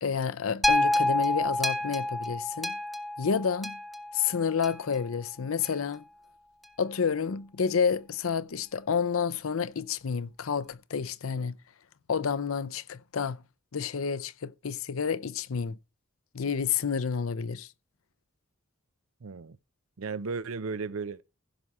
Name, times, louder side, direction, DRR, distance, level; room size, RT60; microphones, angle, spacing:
voice 1, 0.0-2.8 3.2-3.8 4.1-6.0 6.8-11.5 12.1-13.4 13.7-15.8 16.3-17.7, left 6 dB, 80° left, 0.6 m, -29 dB
sound 1, 0.6-5.0 5.6-5.7, left 1 dB, ahead, 0.8 m, -28 dB
voice 2, 19.2-19.6 20.0-21.2, right 4 dB, 85° right, 0.6 m, -35 dB
15.5 x 5.6 x 4.7 m
head